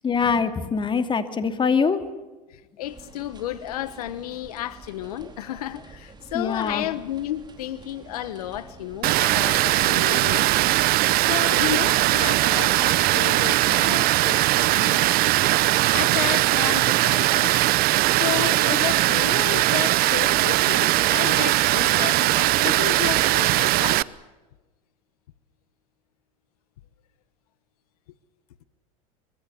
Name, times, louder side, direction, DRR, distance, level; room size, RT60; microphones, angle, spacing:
voice 1, 0.0-2.0 6.3-6.9, left 5 dB, 25° left, 2.5 m, -23 dB
voice 2, 2.5-10.8 11.0-15.1 15.8-17.6 18.2-24.0, left 13 dB, 85° left, 1.2 m, -32 dB
sound 1, 2.8-9.2, right 4 dB, 25° right, 4.4 m, -47 dB
Water, 9.0-24.0, right 18 dB, 55° right, 0.8 m, -20 dB
24.0 x 23.0 x 7.0 m
supercardioid pair, 100°, 19 cm